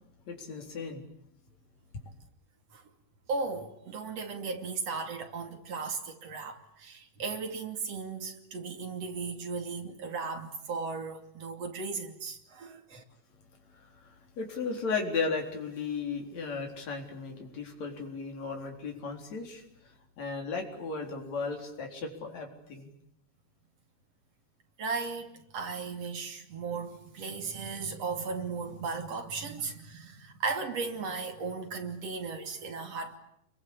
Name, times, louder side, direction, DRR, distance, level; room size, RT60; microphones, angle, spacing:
voice 1, 0.3-1.1 13.7-22.9, left 4 dB, 60° left, 5.3 m, -36 dB
voice 2, 3.3-13.0 24.8-33.2, right 4 dB, 55° right, 3.7 m, -36 dB
29.5 x 23.0 x 8.6 m
omnidirectional pair, 3.5 m